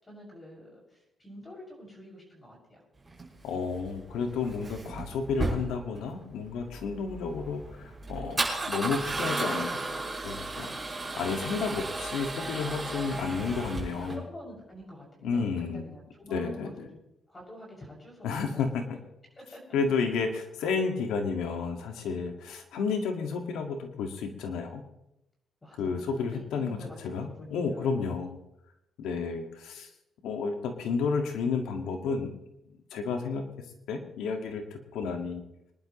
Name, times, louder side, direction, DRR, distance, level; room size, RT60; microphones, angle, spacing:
voice 1, 0.0-2.8 14.0-17.0 17.3-18.7 19.3-19.6 25.6-28.0, equal, 25° left, -3 dB, 6.7 m, -48 dB
Male speech man speaking / Car / Engine starting, 3.1-14.1, right 2 dB, 15° right, 6.2 m, -34 dB
voice 2, 3.4-8.4 8.7-9.8 10.2-14.2 15.2-15.8 16.3-16.9 18.2-19.0 19.7-24.8 25.8-26.8 27.0-28.4 29.0-29.9 30.2-32.3 32.9-33.4 33.9-35.5, left 5 dB, 85° left, 4 dB, 2.0 m, -31 dB
25.0 x 11.5 x 3.2 m, 0.86 s
cardioid pair, 90°, 0 cm